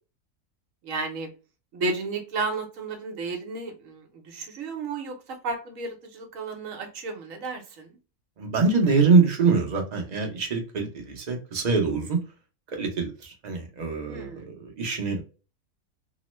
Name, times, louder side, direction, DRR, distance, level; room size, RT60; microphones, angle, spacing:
voice 1, 0.8-1.3 1.7-8.0 14.1-14.5, right 3 dB, 65° right, 4 dB, 1.1 m, -33 dB
voice 2, 8.4-12.2 12.7-15.2, right 4 dB, 40° right, 2 dB, 0.6 m, -24 dB
3.0 x 2.0 x 3.0 m, 0.33 s
omnidirectional pair, 1.6 m